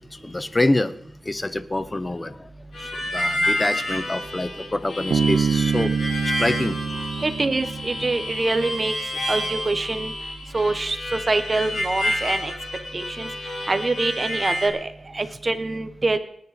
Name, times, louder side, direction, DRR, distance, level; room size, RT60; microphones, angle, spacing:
voice 1, 0.1-1.0 1.2-2.5 3.1-5.9 6.4-6.8 7.1-7.3, left 2 dB, 15° left, 14 dB, 0.7 m, -26 dB
Harmonica, 2.7-14.7, left 1 dB, 70° left, 4.4 m, -29 dB
Bass guitar, 5.1-8.6, right 6 dB, 85° right, 0.5 m, -25 dB
voice 2, 7.2-9.0 9.3-10.1 10.5-12.5 12.9-13.3 13.7-16.2, right 3 dB, 25° right, 10 dB, 1.2 m, -25 dB
29.0 x 9.9 x 4.3 m, 0.72 s
wide cardioid pair, 165°, 0 cm